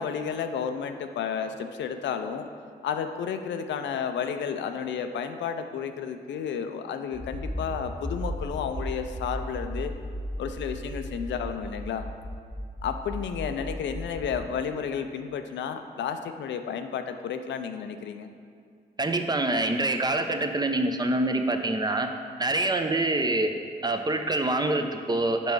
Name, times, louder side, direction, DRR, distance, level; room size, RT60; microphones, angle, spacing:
voice 1, 0.0-2.5 2.8-9.9 10.4-12.1 12.8-18.3, left 7 dB, 75° left, 8 dB, 0.5 m, -32 dB
Accelerating revving vroom, 7.1-14.4, equal, ahead, 1.2 m, -35 dB
voice 2, 19.0-22.1 22.4-23.5 23.8-25.5, right 2 dB, 20° right, 6 dB, 0.6 m, -25 dB
5.4 x 5.3 x 4.6 m, 2.3 s
supercardioid pair, 45°, 19 cm